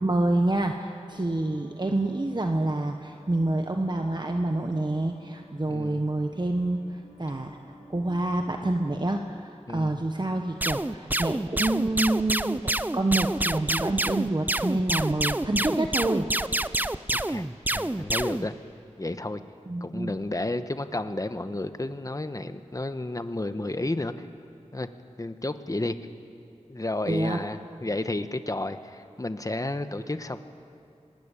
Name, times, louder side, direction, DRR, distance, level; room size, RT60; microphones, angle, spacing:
voice 1, 0.0-7.6 7.9-16.3 19.7-20.1 27.1-27.4, right 2 dB, 40° right, 4 dB, 1.3 m, -27 dB
sound 1, 1.1-9.4, equal, 85° right, 6.8 m, -52 dB
voice 2, 5.7-6.0 9.7-10.0 17.1-17.4 17.7-18.6 19.0-19.4 19.8-24.3 24.7-24.9 25.2-26.0 26.7-30.4, left 2 dB, 30° left, 10 dB, 1.2 m, -32 dB
sound 2, 10.6-18.5, right 1 dB, 15° right, 0.6 m, -27 dB
25.0 x 19.5 x 8.6 m, 2.5 s
wide cardioid pair, 50°, 12 cm